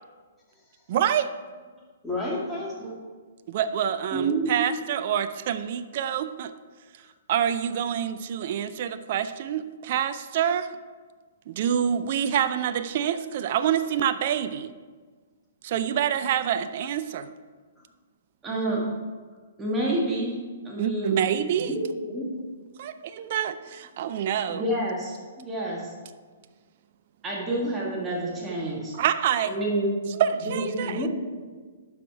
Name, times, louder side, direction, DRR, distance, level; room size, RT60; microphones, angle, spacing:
voice 1, 0.9-1.3 3.5-6.5 7.3-10.7 11.5-14.7 15.6-17.3 20.8-21.8 22.8-24.6 28.9-29.6 30.1-31.1, right 9 dB, 45° right, 11 dB, 0.4 m, -26 dB
voice 2, 2.0-2.9 21.4-22.3 30.4-31.1, left 1 dB, 10° left, -5 dB, 2.4 m, -31 dB
voice 3, 4.1-4.6 18.4-18.9 19.6-20.4 20.6-21.2 24.5-25.9 27.2-28.9 29.5-30.0, right 1 dB, 15° right, -4 dB, 1.6 m, -28 dB
12.0 x 4.9 x 4.7 m, 1.5 s
figure-of-eight pair, 120°, 0 cm